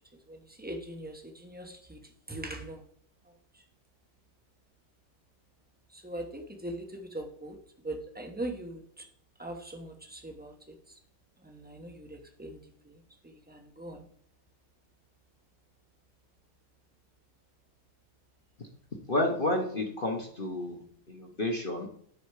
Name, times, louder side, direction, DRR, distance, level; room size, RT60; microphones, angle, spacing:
voice 1, 0.3-2.0 2.3-2.8 3.2-3.6 5.9-7.6 7.8-9.0 9.4-10.5 11.4-12.6 12.8-14.0, right 1 dB, 10° right, 3 dB, 0.6 m, -41 dB
voice 2, 19.1-20.8 21.1-21.9, left 1 dB, 35° left, 2 dB, 0.9 m, -30 dB
10.5 x 4.4 x 4.8 m, 0.65 s
omnidirectional pair, 2.3 m